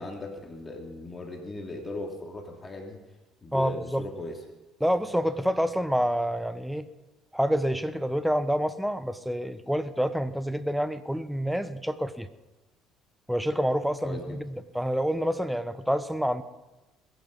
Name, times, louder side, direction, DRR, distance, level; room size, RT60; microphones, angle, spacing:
voice 1, 0.0-3.0 3.4-4.4 14.0-14.4, left 2 dB, 25° left, 2 dB, 2.9 m, -38 dB
voice 2, 3.5-4.1 4.8-6.9 7.3-12.3 13.3-16.4, equal, ahead, 13 dB, 1.0 m, -27 dB
21.5 x 9.1 x 5.4 m, 1.1 s
supercardioid pair, 70°, 0 cm